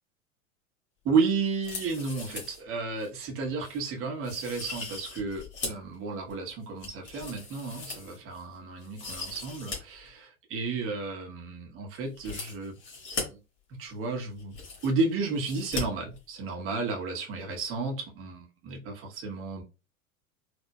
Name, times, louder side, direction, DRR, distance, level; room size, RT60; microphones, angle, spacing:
voice 1, 1.0-12.8 13.3-13.4 13.8-14.6 14.8-19.6, right 4 dB, 30° right, 1.0 m, -32 dB
sound 1, 1.5-2.6 3.0-3.1 3.6-3.8 4.2-5.9 6.3-8.4 8.8-9.8 10.1-10.2 12.1-13.2 14.0-14.1 14.3-15.0 15.4-15.8 16.1-16.2, left 3 dB, 30° left, 1.8 m, -39 dB
4.4 x 2.2 x 2.2 m
figure-of-eight pair, 85°, 42 cm